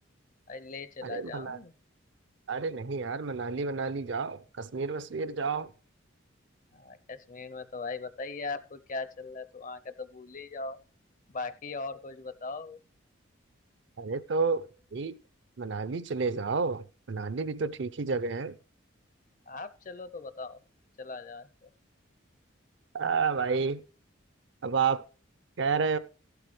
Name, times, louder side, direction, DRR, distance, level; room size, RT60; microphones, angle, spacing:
voice 1, 0.5-1.7 6.7-10.8 11.3-12.8 19.5-20.6 21.0-21.7, left 3 dB, 40° left, 0.6 m, -39 dB
voice 2, 1.0-1.6 2.5-5.7 14.0-15.2 15.6-18.6 22.9-23.8 24.6-25.0 25.6-26.0, right 5 dB, 60° right, 0.5 m, -30 dB
14.5 x 7.9 x 3.2 m
head